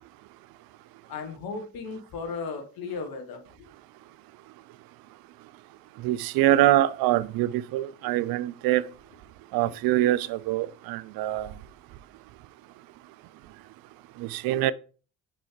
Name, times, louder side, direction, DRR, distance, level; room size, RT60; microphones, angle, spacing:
voice 1, 1.1-3.4, left 4 dB, 65° left, 1.4 m, -35 dB
voice 2, 6.0-8.9 9.5-11.5 14.2-14.7, right 14 dB, 65° right, 0.5 m, -24 dB
6.0 x 5.3 x 3.3 m
hypercardioid pair, 50°, 38 cm